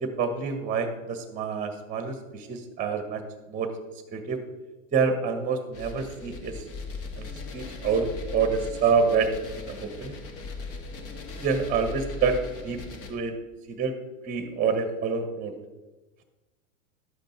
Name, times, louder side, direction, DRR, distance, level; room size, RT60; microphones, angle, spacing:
voice 1, 0.0-3.2 3.5-3.7 4.1-4.4 4.9-6.6 7.2-7.3 7.5-9.3 9.6-10.2 11.4-12.4 12.6-12.8 13.1-13.3 13.7-13.9 14.2-15.5, right 5 dB, 20° right, 8 dB, 1.2 m, -27 dB
sound 1, 5.7-13.1, left 4 dB, 35° left, 1.7 m, -39 dB
12.0 x 7.9 x 4.5 m, 1.2 s
hypercardioid pair, 105°, 40 cm